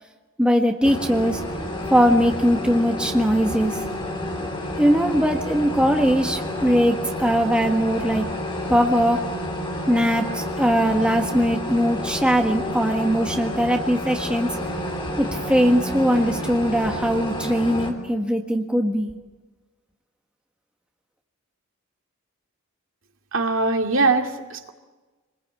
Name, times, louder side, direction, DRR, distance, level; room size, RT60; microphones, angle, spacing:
voice 1, 0.4-1.4 1.9-3.8 4.8-8.2 8.7-9.3 9.9-14.5 15.2-19.1, equal, 5° right, 2 dB, 1.5 m, -20 dB
sound 1, 0.8-17.9, left 1 dB, 20° left, 3.4 m, -30 dB
voice 2, 23.3-24.7, right 3 dB, 60° right, 4 dB, 2.4 m, -22 dB
27.5 x 21.0 x 8.5 m, 1.2 s
head